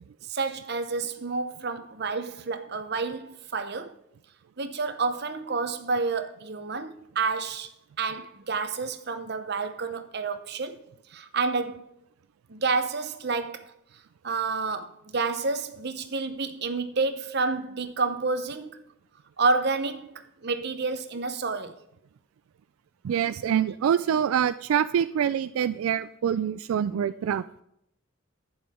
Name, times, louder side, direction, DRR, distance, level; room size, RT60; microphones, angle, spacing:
voice 1, 0.3-3.9 4.6-7.7 8.0-10.8 11.1-11.9 12.5-13.7 14.2-18.7 19.4-20.1 20.4-21.8, right 4 dB, 50° right, 0.8 m, -29 dB
voice 2, 23.0-27.4, right 8 dB, 90° right, 0.3 m, -25 dB
11.0 x 9.6 x 3.6 m
head